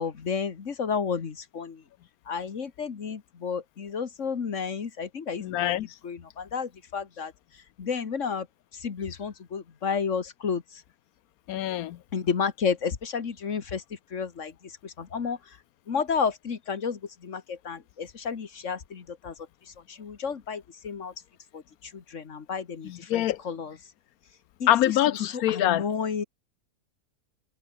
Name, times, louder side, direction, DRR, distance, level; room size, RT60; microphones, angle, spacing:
voice 1, 0.0-1.8 2.3-5.7 6.0-7.3 7.8-8.5 8.7-10.8 12.1-15.6 15.9-19.4 19.7-21.1 21.5-23.8 24.6-25.0 25.3-26.2, left 6 dB, 55° left, 1.8 m, -32 dB
voice 2, 5.4-5.9 11.5-12.0 22.8-23.4 24.7-25.8, left 13 dB, 75° left, 1.1 m, -24 dB
omnidirectional pair, 1.6 m